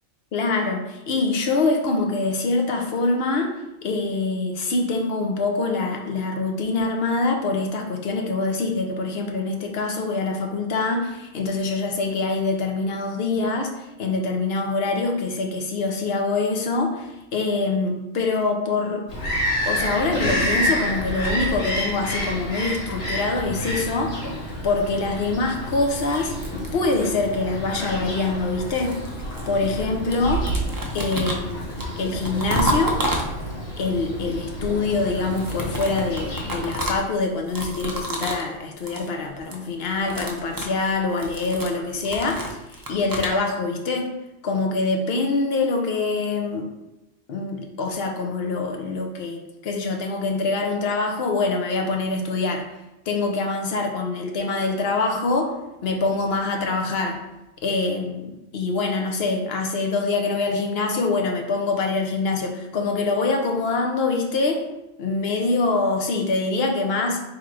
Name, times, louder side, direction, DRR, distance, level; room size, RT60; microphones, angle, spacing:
voice 1, 0.3-3.5 3.8-19.0 19.7-24.3 24.6-26.3 26.7-29.0 29.5-30.5 30.9-33.0 33.8-42.4 42.7-44.1 44.4-46.7 47.3-52.7 53.1-55.5 55.8-57.2 57.6-64.6 65.0-67.2, left 3 dB, 55° left, 2 dB, 0.8 m, -24 dB
Bird vocalization bird call bird song, 19.1-36.8, equal, 75° left, 1.7 m, -29 dB
sound 1, 25.7-27.3 28.2-29.8 30.1-33.7 35.2-38.5 38.8-39.1 39.4-39.7 40.0-43.4, right 1 dB, 35° right, 0.3 m, -30 dB
3.6 x 3.1 x 4.7 m, 0.99 s
omnidirectional pair, 1.4 m